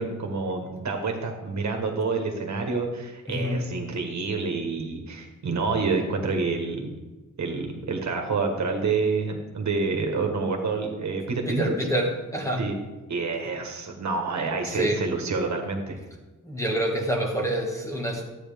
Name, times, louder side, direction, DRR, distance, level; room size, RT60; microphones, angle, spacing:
voice 1, 0.0-7.0 7.4-11.7 12.6-12.7 13.1-16.0, right 4 dB, 60° right, 3 dB, 1.5 m, -28 dB
voice 2, 3.3-3.6 11.5-12.6 14.7-15.0 16.4-18.2, right 1 dB, 10° left, 0 dB, 1.3 m, -27 dB
12.5 x 8.6 x 3.5 m, 1.1 s
wide cardioid pair, 170°, 31 cm